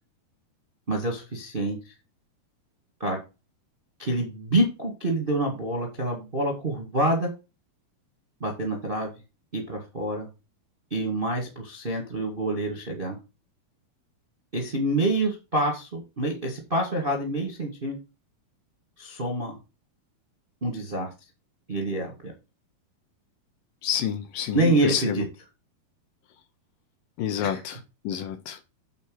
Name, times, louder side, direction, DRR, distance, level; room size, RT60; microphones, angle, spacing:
voice 1, 0.9-1.9 3.0-3.2 4.0-7.3 8.4-9.1 9.5-10.3 10.9-13.2 14.5-18.0 19.0-19.6 20.6-21.1 21.7-22.3 24.5-25.2 27.4-27.6, right 1 dB, 30° right, 2 dB, 1.0 m, -27 dB
voice 2, 23.8-25.3 27.2-27.8 28.0-28.6, left 9 dB, 75° left, 9 dB, 2.4 m, -29 dB
8.4 x 4.5 x 6.3 m, 0.28 s
omnidirectional pair, 4.5 m